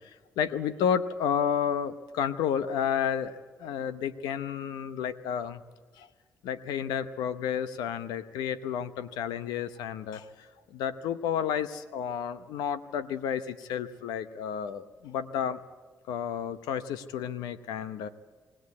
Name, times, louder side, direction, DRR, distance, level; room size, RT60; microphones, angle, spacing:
voice 1, 0.4-5.6 6.0-6.1 6.4-15.6 16.1-18.1, left 8 dB, 85° left, 13 dB, 0.8 m, -31 dB
19.5 x 18.0 x 8.4 m, 1.4 s
supercardioid pair, 55°, 7 cm